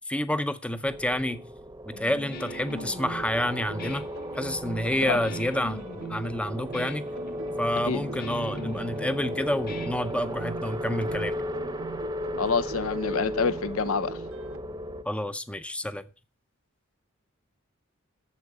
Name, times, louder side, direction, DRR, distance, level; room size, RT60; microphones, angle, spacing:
voice 1, 0.1-1.4 1.9-4.0 4.4-5.8 6.1-7.0 7.6-11.4 15.0-16.0, left 1 dB, 5° left, 0.6 m, -29 dB
sound 1, 0.8-15.0, equal, 15° right, 0.8 m, -35 dB
Guitar, 1.9-10.6, left 2 dB, 45° left, 1.1 m, -42 dB
sound 2, 2.7-14.6, right 4 dB, 75° right, 0.9 m, -43 dB
voice 2, 12.4-14.2, left 5 dB, 80° left, 0.7 m, -27 dB
8.3 x 7.1 x 6.7 m
head